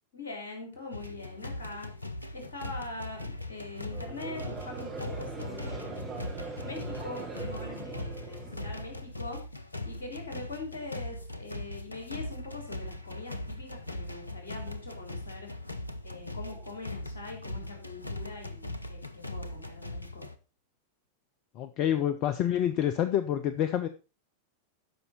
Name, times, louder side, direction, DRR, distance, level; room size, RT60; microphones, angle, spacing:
voice 1, 0.1-1.9 2.3-6.2 6.6-9.4 9.9-15.5 16.0-20.3, left 3 dB, 65° left, 3 dB, 3.6 m, -43 dB
sound 1, 0.9-20.4, left 1 dB, 85° left, 0.7 m, -40 dB
Conversation / Crowd, 3.9-9.1, right 4 dB, 25° right, 3.3 m, -41 dB
voice 2, 21.5-23.9, left 10 dB, 40° left, 11 dB, 0.6 m, -27 dB
13.0 x 5.5 x 4.3 m, 0.32 s
figure-of-eight pair, 90°, 0 cm